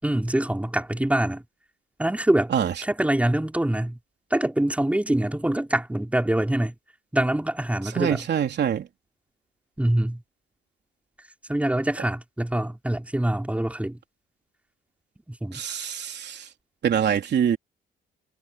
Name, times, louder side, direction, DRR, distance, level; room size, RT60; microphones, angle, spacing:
voice 1, 0.0-1.4 2.0-2.5 2.8-4.0 4.3-6.7 7.1-8.2 9.8-10.2 11.5-14.0 15.3-15.6, right 1 dB, 5° right, 4.5 m, -24 dB
voice 2, 8.0-8.9 15.5-16.5 16.8-17.6, right 8 dB, 60° right, 3.6 m, -24 dB
cardioid pair, 90°, 20 cm